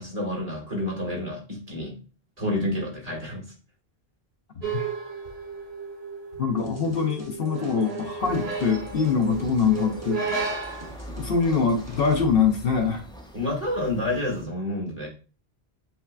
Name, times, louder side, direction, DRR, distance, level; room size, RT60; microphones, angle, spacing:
voice 1, 0.0-2.0 2.4-3.5 13.3-15.1, left 1 dB, 35° right, -2 dB, 2.2 m, -29 dB
sound 1, 4.6-11.0, right 5 dB, 75° right, 2.0 m, -34 dB
voice 2, 6.4-10.2 11.2-13.0, left 5 dB, 65° left, 4 dB, 0.9 m, -24 dB
sound 2, 6.6-12.2, right 1 dB, 15° right, 1.0 m, -46 dB
sound 3, 8.2-14.4, equal, 5° left, 0.4 m, -42 dB
7.9 x 2.8 x 2.3 m, 0.35 s
omnidirectional pair, 1.1 m